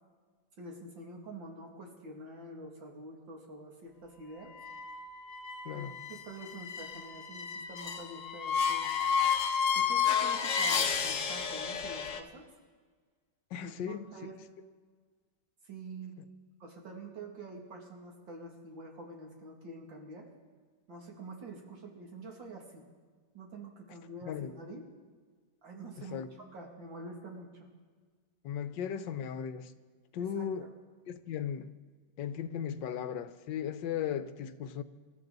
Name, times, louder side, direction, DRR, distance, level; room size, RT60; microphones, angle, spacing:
voice 1, 0.6-4.5 5.7-5.8 6.1-8.9 9.7-12.5 13.6-14.4 15.6-16.2 16.6-20.3 20.9-22.8 23.3-24.8 25.6-27.7 30.2-30.7, right 2 dB, 90° right, 0 dB, 3.1 m, -47 dB
sound 1, 4.5-12.2, left 7 dB, 50° left, 1.1 m, -32 dB
voice 2, 5.6-6.0 13.5-14.1 24.3-24.5 26.1-26.3 28.4-29.7 30.1-30.6 31.1-31.7 32.2-34.8, left 8 dB, 75° left, 11 dB, 1.4 m, -36 dB
26.0 x 13.5 x 4.0 m, 1.5 s
omnidirectional pair, 2.0 m